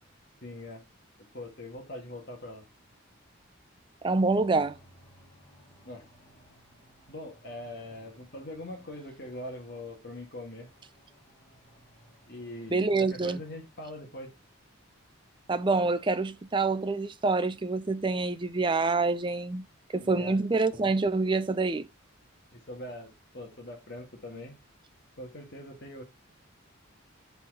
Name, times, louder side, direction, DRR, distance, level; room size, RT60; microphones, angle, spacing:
voice 1, 0.4-0.9 1.3-2.7 5.9-6.1 7.1-10.7 12.3-14.3 19.9-20.4 22.5-24.6 25.2-26.0, left 1 dB, 50° left, 1.8 m, -42 dB
voice 2, 4.0-4.8 12.7-13.4 15.5-19.7 19.9-21.9, right 3 dB, 20° right, 0.4 m, -26 dB
sound 1, 4.1-14.0, equal, 30° left, 3.1 m, -61 dB
5.7 x 4.1 x 4.9 m
head